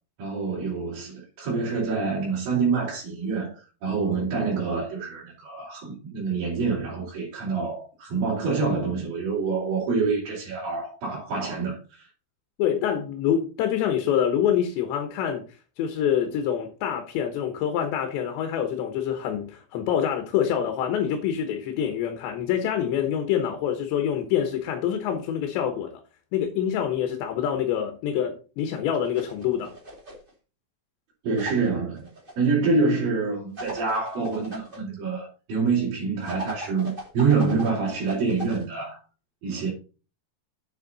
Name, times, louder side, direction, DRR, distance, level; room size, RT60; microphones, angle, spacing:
voice 1, 0.2-12.1 31.2-32.1 32.4-39.0 39.4-39.7, right 4 dB, 55° right, 5.4 m, -26 dB
voice 2, 12.6-15.4 15.8-26.0 26.3-29.8, left 9 dB, 80° left, 3.5 m, -26 dB
sound 1, 28.9-30.3 31.4-32.3 33.5-34.8 36.2-38.6, equal, 25° right, 1.1 m, -39 dB
9.0 x 7.4 x 4.0 m
omnidirectional pair, 5.0 m